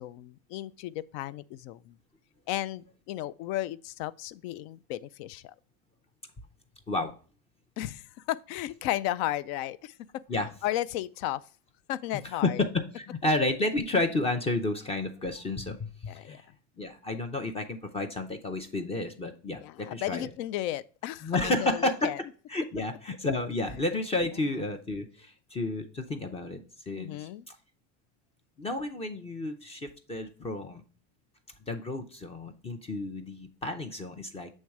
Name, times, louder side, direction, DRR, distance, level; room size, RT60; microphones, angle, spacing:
voice 1, 0.0-2.0 2.5-5.5 7.8-10.2 10.6-11.4 11.9-12.6 16.1-16.4 19.6-22.2 26.9-27.4, left 14 dB, 65° left, 0.4 m, -34 dB
voice 2, 12.4-16.5 16.8-20.3 21.2-22.1 22.5-27.6 28.6-30.8 31.7-34.5, left 2 dB, 20° left, 0.5 m, -31 dB
7.4 x 3.2 x 4.6 m
supercardioid pair, 135°, 33 cm